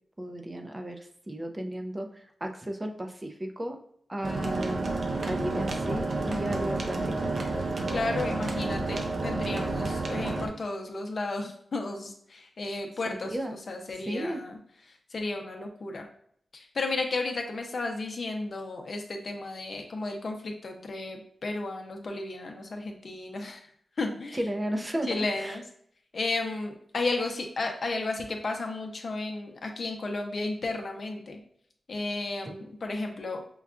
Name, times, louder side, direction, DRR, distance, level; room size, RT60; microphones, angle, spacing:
voice 1, 0.2-3.8 4.1-4.9 5.2-7.3 13.3-13.6 14.0-14.4 24.3-25.1 25.4-25.6, right 1 dB, 25° right, 4 dB, 0.5 m, -34 dB
sound 1, 4.2-10.5, right 2 dB, 65° right, 0.6 m, -30 dB
voice 2, 7.9-14.6 14.9-16.1 16.5-23.7 24.0-24.4 25.1-25.6 26.1-31.4 31.9-33.4, left 2 dB, 60° left, 3 dB, 0.6 m, -33 dB
5.3 x 2.3 x 2.4 m, 0.65 s
cardioid pair, 55°, 0 cm